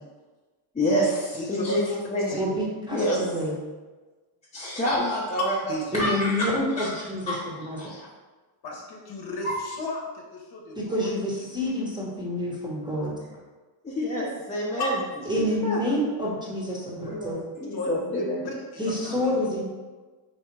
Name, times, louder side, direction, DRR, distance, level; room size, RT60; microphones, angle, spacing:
voice 1, 0.7-1.8 2.1-2.3 2.9-3.2 4.5-5.6 5.9-6.5 6.8-6.9 7.3-7.4 7.8-8.1 9.4-9.5 13.8-14.9 15.6-15.8 17.0-18.4, equal, 15° left, -8 dB, 0.7 m, -27 dB
voice 2, 1.4-2.0 2.3-2.4 5.0-6.1 8.6-11.1 14.8-16.0 17.7-19.2, left 1 dB, 50° left, -1 dB, 0.9 m, -34 dB
voice 3, 2.4-3.6 5.9-7.9 10.7-13.1 15.3-17.4 18.8-19.6, left 1 dB, 10° right, -5 dB, 0.9 m, -28 dB
3.4 x 2.9 x 4.5 m, 1.3 s
cardioid pair, 125°, 50 cm